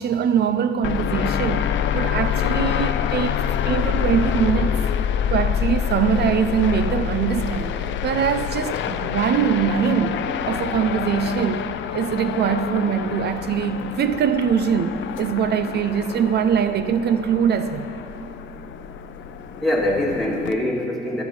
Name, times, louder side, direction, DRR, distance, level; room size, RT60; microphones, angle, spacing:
voice 1, 0.0-4.8 5.3-7.7 8.0-17.9, right 7 dB, 55° right, 11 dB, 0.5 m, -22 dB
sound 1, 0.8-20.5, left 9 dB, 70° left, 0.5 m, -26 dB
voice 2, 18.7-21.2, left 1 dB, ahead, -3 dB, 1.8 m, -25 dB
11.5 x 6.4 x 6.1 m, 2.7 s
cardioid pair, 90°, 20 cm